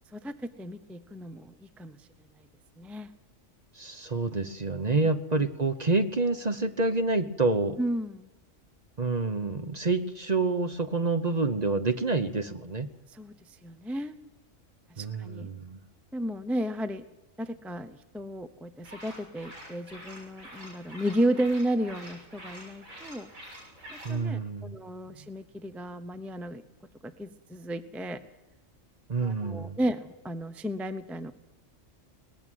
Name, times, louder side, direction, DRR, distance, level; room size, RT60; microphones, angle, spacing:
voice 1, 0.1-2.1 2.4-2.5 2.8-3.1 5.4-5.5 7.8-8.3 13.1-14.2 14.9-15.5 16.1-17.0 17.4-23.3 23.9-26.6 27.0-28.2 29.2-31.3, right 1 dB, ahead, 11 dB, 0.7 m, -33 dB
voice 2, 3.8-7.8 9.0-12.9 15.0-15.8 24.0-24.8 29.1-29.8, right 3 dB, 35° right, 9 dB, 1.0 m, -28 dB
sound 1, 18.8-24.2, equal, 85° right, 7.6 m, -47 dB
20.0 x 15.0 x 9.2 m, 1.0 s
omnidirectional pair, 1.4 m